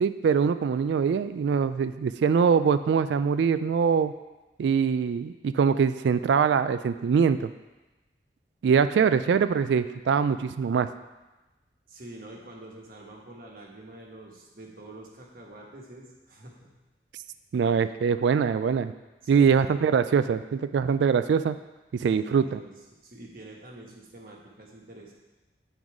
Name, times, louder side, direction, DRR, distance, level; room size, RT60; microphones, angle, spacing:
voice 1, 0.0-4.1 4.6-7.5 8.6-10.9 17.5-18.9 19.3-21.6 22.0-22.4, right 6 dB, 75° right, 12 dB, 0.3 m, -23 dB
voice 2, 11.9-16.7 17.8-17.9 19.2-19.7 22.1-25.1, right 1 dB, 50° right, -1 dB, 1.2 m, -46 dB
8.9 x 3.9 x 4.7 m, 1.1 s
head